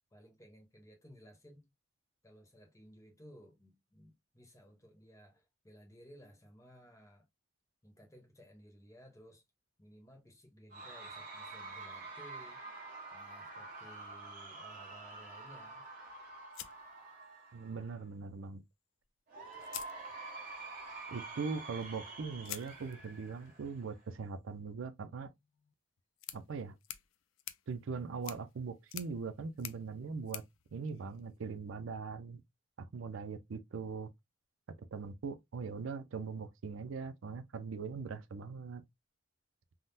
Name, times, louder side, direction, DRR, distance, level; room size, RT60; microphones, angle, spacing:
voice 1, 0.1-1.7 2.2-7.3 7.8-9.4 9.8-12.6 13.1-15.9, equal, 15° left, 0.9 m, -58 dB
Cheering / Crowd, 10.7-18.0 19.3-24.0, right 3 dB, 45° right, 1.1 m, -48 dB
sound 1, 16.5-17.7 19.0-19.1 19.6-20.6 22.4-31.6, left 12 dB, 80° left, 0.4 m, -50 dB
voice 2, 17.5-18.6 21.1-25.3 26.3-26.8 27.7-30.4 30.7-32.4 32.9-34.1 34.9-38.8, right 5 dB, 80° right, 0.4 m, -41 dB
3.6 x 2.1 x 2.6 m
head